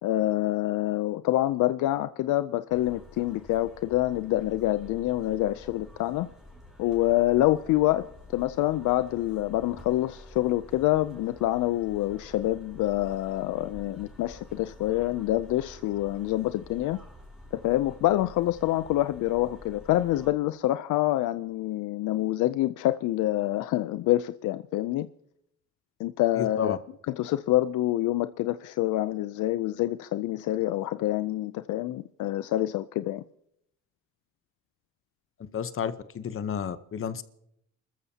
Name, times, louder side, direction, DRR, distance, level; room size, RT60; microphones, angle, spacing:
voice 1, 0.0-6.3 6.8-8.1 8.3-17.0 17.5-25.1 26.0-26.8 27.2-33.2, left 15 dB, 80° left, 0.5 m, -26 dB
sound 1, 2.7-20.3, left 1 dB, ahead, 4.0 m, -49 dB
voice 2, 26.4-26.8 35.4-37.2, left 8 dB, 45° left, 0.9 m, -32 dB
29.5 x 14.0 x 2.8 m
cardioid pair, 90°, 30 cm